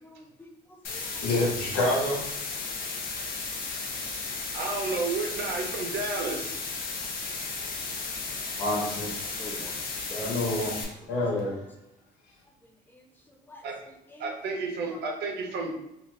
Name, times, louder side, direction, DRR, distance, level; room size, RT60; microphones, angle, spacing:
voice 1, 0.0-1.2 7.0-8.1 8.5-8.6 9.2-10.6 11.0-11.6 12.6-13.6 14.1-15.1, left 1 dB, 10° left, 2 dB, 0.5 m, -48 dB
sound 1, 0.8-10.8, left 4 dB, 60° left, 0.6 m, -34 dB
voice 2, 1.2-2.2 3.7-3.8 8.5-9.2 10.1-11.6, left 1 dB, 80° left, -3 dB, 1.1 m, -28 dB
voice 3, 4.5-6.5 13.6-13.7 14.2-15.7, right 3 dB, 80° right, 1 dB, 0.7 m, -31 dB
2.7 x 2.4 x 3.2 m, 0.84 s
cardioid pair, 130°, 17 cm